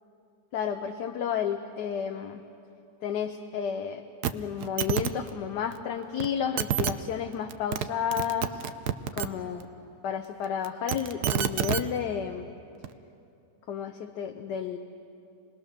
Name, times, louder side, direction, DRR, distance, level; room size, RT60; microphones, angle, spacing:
voice 1, 0.5-2.4 3.0-4.0 4.3-8.6 9.1-9.7 10.0-12.5 13.7-14.8, left 8 dB, 75° left, 5 dB, 1.4 m, -31 dB
sound 1, 4.2-4.3 4.6-5.1 6.2-6.3 6.6-6.9 7.5-7.9 8.1-9.3 10.6-11.8 12.8-12.9, right 10 dB, 70° right, 1.2 m, -27 dB
28.0 x 20.5 x 6.6 m, 2.6 s
omnidirectional pair, 1.8 m